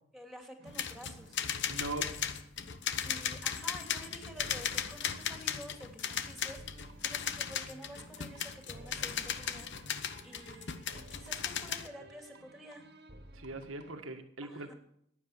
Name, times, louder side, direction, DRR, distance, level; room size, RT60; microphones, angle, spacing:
voice 1, 0.1-1.4 3.0-12.9 14.4-14.7, equal, ahead, 3 dB, 2.9 m, -50 dB
sound 1, 0.6-13.9, right 1 dB, 55° right, 1.8 m, -54 dB
sound 2, 0.7-11.9, left 8 dB, 60° left, 1.0 m, -36 dB
voice 2, 1.7-2.1 13.3-14.7, right 2 dB, 80° right, 6 dB, 1.7 m, -40 dB
15.0 x 10.0 x 7.3 m, 0.73 s
head